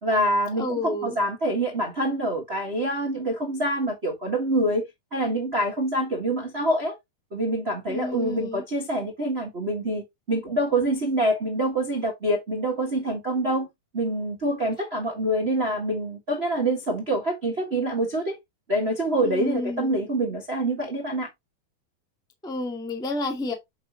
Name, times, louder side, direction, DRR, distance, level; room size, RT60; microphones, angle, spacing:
voice 1, 0.0-4.9 5.1-6.9 7.3-13.7 13.9-18.4 18.7-21.3, right 1 dB, 55° right, 0.6 m, -26 dB
voice 2, 0.6-1.2 7.9-8.6 19.2-19.9 22.4-23.5, left 2 dB, ahead, 1.1 m, -30 dB
8.6 x 5.8 x 3.0 m
omnidirectional pair, 4.3 m